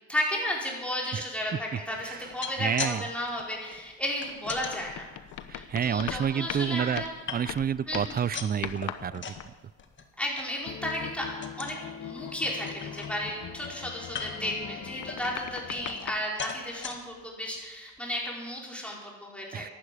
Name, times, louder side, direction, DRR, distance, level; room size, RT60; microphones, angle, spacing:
voice 1, 0.1-5.1 5.5-7.1 7.9-8.2 10.2-11.3 11.6-19.7, left 1 dB, 5° left, -3 dB, 4.9 m, -33 dB
sound 1, 2.2-3.0 3.2-4.7 5.3-6.3 6.7-7.7 8.0-9.5 9.8-10.1 10.4-10.5 10.9-11.1 11.4-11.8 12.3-12.4 12.7-13.5 14.1-14.5 15.1-16.1 16.4-17.0 17.6-17.7 18.0-18.1, left 5 dB, 40° left, 1.8 m, -39 dB
voice 2, 2.6-3.0 5.5-7.0 7.3-9.2 19.5-19.7, right 8 dB, 30° right, 20 dB, 0.4 m, -29 dB
sound 2, 4.3-7.2 7.5-9.9 14.2-16.2, left 11 dB, 80° left, 1.0 m, -40 dB
sound 3, 10.6-16.1, left 8 dB, 60° left, 1.2 m, -42 dB
11.5 x 11.0 x 8.6 m, 1.3 s
cardioid pair, 90°, 30 cm